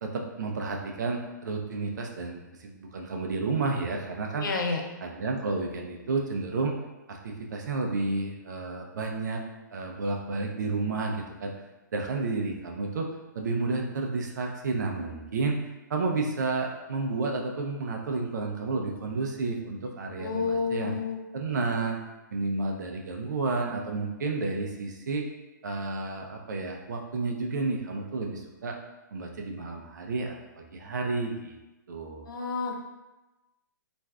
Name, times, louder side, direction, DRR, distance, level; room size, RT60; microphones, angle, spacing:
voice 1, 0.0-4.5 5.0-6.7 7.1-9.4 9.7-11.5 11.9-13.1 13.3-15.6 15.9-21.0 21.3-22.0 22.3-25.2 25.6-28.7 29.1-31.6 31.9-32.2, right 3 dB, 65° right, 1 dB, 0.5 m, -31 dB
voice 2, 4.4-4.8 20.2-21.2 21.5-21.7 32.3-32.8, left 4 dB, 85° left, 2 dB, 0.6 m, -30 dB
2.5 x 2.3 x 3.2 m, 1.0 s
hypercardioid pair, 160°, 10 cm